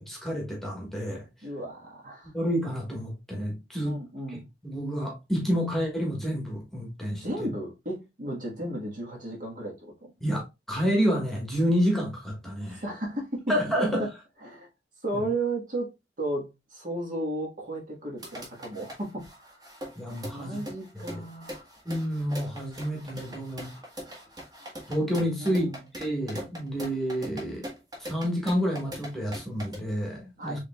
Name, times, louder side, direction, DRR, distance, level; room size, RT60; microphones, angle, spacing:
voice 1, 0.1-1.2 2.3-4.0 4.6-7.5 10.2-12.8 13.5-14.0 15.1-15.2 20.0-20.6 21.8-23.7 24.9-25.6 26.0-27.7 28.0-30.6, equal, ahead, 1.3 m, -29 dB
voice 2, 1.4-2.3 3.8-4.5 7.2-10.1 12.7-14.1 14.4-14.7 15.0-19.7 20.3-21.7 25.4-25.9 30.4-30.6, right 1 dB, 45° right, 1.4 m, -34 dB
sound 1, 18.2-29.8, equal, 20° right, 1.3 m, -41 dB
4.8 x 3.3 x 2.2 m
head